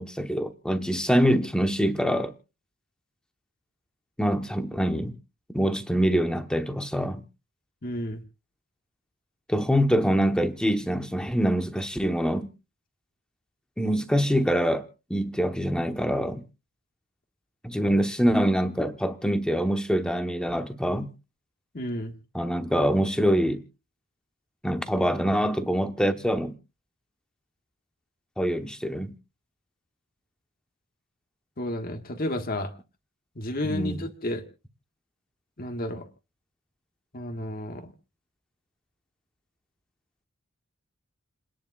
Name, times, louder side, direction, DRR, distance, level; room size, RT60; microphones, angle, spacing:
voice 1, 0.0-2.3 4.2-5.2 5.5-7.2 9.5-12.5 13.8-16.4 17.6-21.1 22.3-23.6 24.6-26.6 28.4-29.1 33.6-34.0, equal, 5° left, 0.9 m, -25 dB
voice 2, 7.8-8.2 21.7-22.1 31.6-32.7 33.4-34.4 35.6-36.0 37.1-37.9, left 1 dB, 40° left, 1.4 m, -31 dB
29.5 x 10.5 x 2.3 m
head